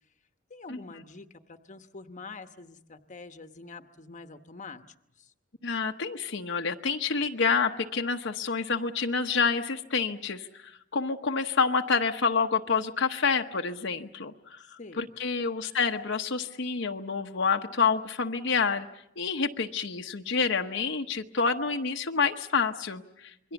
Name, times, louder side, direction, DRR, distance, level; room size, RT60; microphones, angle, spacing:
voice 1, 0.5-4.8 5.2-5.3 14.8-15.1 23.4-23.5, left 3 dB, 40° left, 8 dB, 1.1 m, -45 dB
voice 2, 5.6-18.9 19.2-23.5, left 5 dB, 65° left, 4 dB, 1.0 m, -28 dB
27.5 x 22.5 x 7.1 m, 0.82 s
head